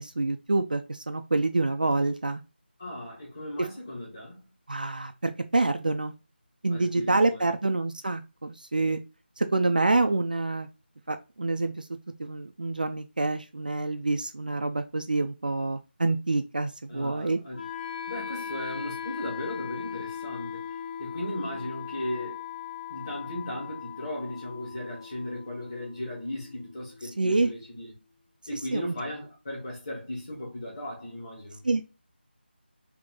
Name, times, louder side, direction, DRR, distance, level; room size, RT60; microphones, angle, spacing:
voice 1, 0.0-2.4 3.6-3.7 4.7-6.1 6.6-9.0 9.4-10.7 11.1-11.8 12.2-17.4 27.2-27.5 28.5-28.9 31.6-31.8, right 2 dB, 50° right, 0.4 m, -27 dB
voice 2, 2.8-4.4 6.7-7.5 16.9-17.6 18.1-22.4 22.9-27.9 28.5-31.6, left 1 dB, 25° left, 1.9 m, -37 dB
Wind instrument woodwind instrument, 17.5-27.5, left 8 dB, 45° left, 1.2 m, -39 dB
3.8 x 2.8 x 3.6 m
figure-of-eight pair, 175°, 6 cm